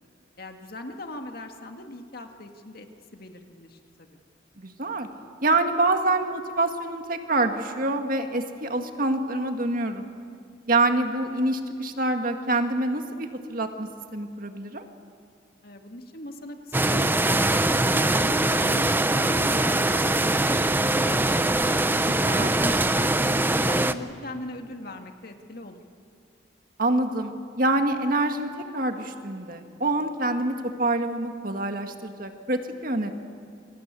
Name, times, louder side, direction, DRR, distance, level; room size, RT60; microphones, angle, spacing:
voice 1, 0.4-2.9 3.1-4.2 15.6-25.8, left 1 dB, 50° left, 5 dB, 2.1 m, -40 dB
voice 2, 4.6-5.1 5.4-10.1 10.7-14.8 22.1-22.5 26.8-33.1, right 2 dB, 45° right, 5 dB, 1.9 m, -26 dB
sound 1, 16.7-23.9, right 2 dB, 10° right, 0.7 m, -22 dB
29.0 x 23.5 x 8.4 m, 2.4 s
head